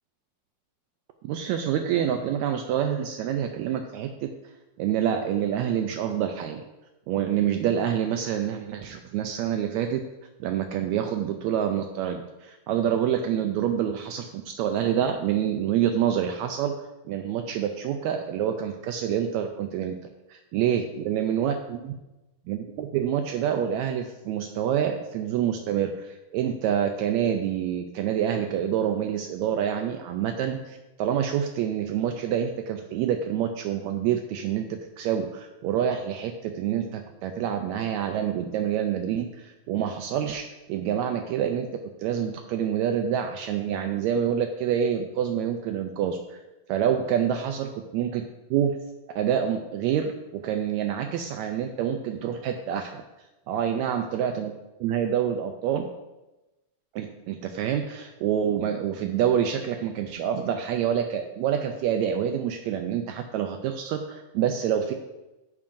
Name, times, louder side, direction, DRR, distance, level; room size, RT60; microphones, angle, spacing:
voice 1, 1.2-4.3 4.8-6.6 7.1-10.0 10.4-16.8 17.1-20.0 20.3-21.9 22.5-34.7 35.0-41.7 42.0-46.4 46.7-48.3 48.5-48.8 49.2-53.0 53.5-54.5 54.8-55.9 56.9-64.9, right 9 dB, 80° right, 6 dB, 1.8 m, -27 dB
12.0 x 7.2 x 2.6 m, 1.0 s
omnidirectional pair, 3.4 m